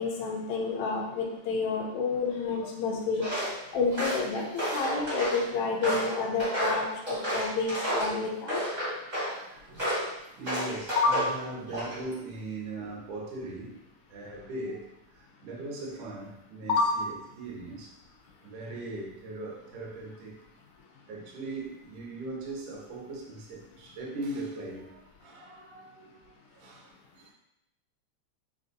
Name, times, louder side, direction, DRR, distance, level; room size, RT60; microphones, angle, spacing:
voice 1, 0.0-3.2 3.7-8.6 11.0-11.2 16.7-17.0, left 4 dB, 80° left, 0 dB, 1.7 m, -29 dB
voice 2, 3.1-3.7 8.7-13.8 14.1-17.9 18.4-20.4 21.1-27.3, right 2 dB, 85° right, -2 dB, 1.0 m, -40 dB
Walk footsteps, 3.2-3.5 3.9-5.4 5.8-8.1 8.5-9.3 9.8-10.1 10.4-11.3 11.7-12.1, equal, 50° right, 0.5 m, -31 dB
6.3 x 2.6 x 2.6 m, 0.88 s
omnidirectional pair, 3.6 m